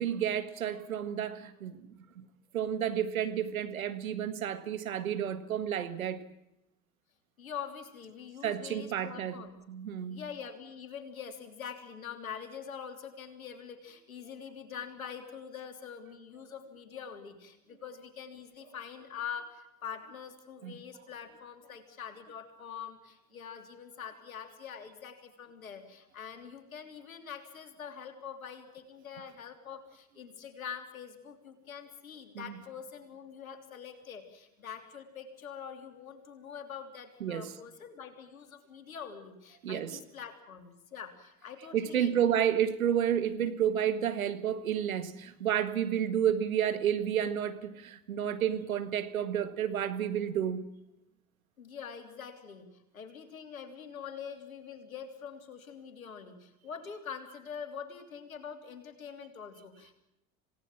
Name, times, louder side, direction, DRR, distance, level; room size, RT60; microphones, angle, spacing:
voice 1, 0.0-1.9 2.2-2.3 2.5-6.2 8.4-9.4 9.7-10.2 20.6-20.7 32.4-32.5 37.2-37.5 39.6-40.0 41.7-50.7, right 9 dB, 85° right, 1.8 m, -31 dB
voice 2, 7.4-9.6 10.1-42.3 51.6-59.9, left 7 dB, 85° left, 3.2 m, -44 dB
27.0 x 18.0 x 7.5 m
hypercardioid pair, 65°, 41 cm